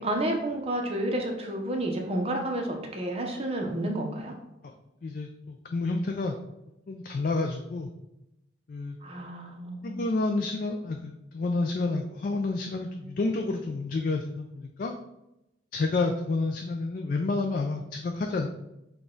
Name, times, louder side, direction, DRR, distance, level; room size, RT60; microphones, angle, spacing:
voice 1, 0.0-4.3 9.0-10.1, right 1 dB, 30° right, 2 dB, 0.7 m, -30 dB
voice 2, 5.0-6.4 6.9-7.9 8.7-9.0 9.8-14.9 15.7-18.5, left 3 dB, 50° left, 3 dB, 0.3 m, -29 dB
6.0 x 2.3 x 3.8 m, 0.89 s
head